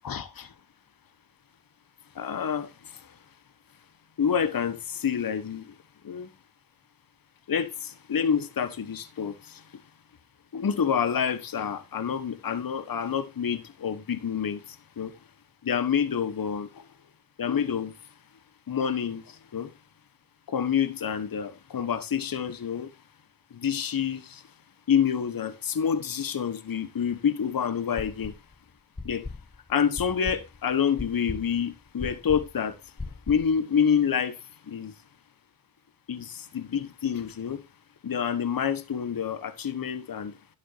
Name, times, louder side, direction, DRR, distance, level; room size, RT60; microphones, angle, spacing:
voice 1, 0.0-0.5 2.2-2.7 4.2-5.7 6.0-6.3 7.5-9.6 10.5-14.6 15.0-15.1 15.6-16.7 17.4-17.9 18.7-19.2 19.5-19.7 20.5-22.9 23.5-24.4 24.9-28.3 29.0-29.3 29.7-32.8 33.3-34.4 34.7-34.9 36.1-37.6 38.0-40.3, left 7 dB, 45° left, 1.3 m, -27 dB
sound 1, 28.0-28.5 29.0-33.6, left 3 dB, 10° left, 0.6 m, -38 dB
11.0 x 10.5 x 2.7 m
supercardioid pair, 45°, 50 cm